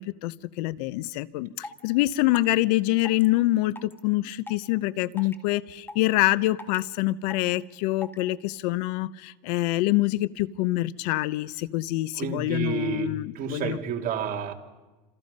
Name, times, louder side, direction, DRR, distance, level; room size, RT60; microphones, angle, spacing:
voice 1, 0.0-13.8, left 17 dB, 85° left, 0.8 m, -26 dB
sound 1, 1.1-1.2 1.6-1.9 2.3-2.5 3.0-3.3 3.7-4.0 4.5-4.7 5.1-5.3 5.9-6.1 6.6-6.8 7.3-7.5 8.0-8.2, left 2 dB, 10° left, 1.6 m, -40 dB
voice 2, 12.2-14.5, right 7 dB, 45° right, 2.7 m, -30 dB
28.5 x 26.5 x 5.4 m
cardioid pair, 145°, 21 cm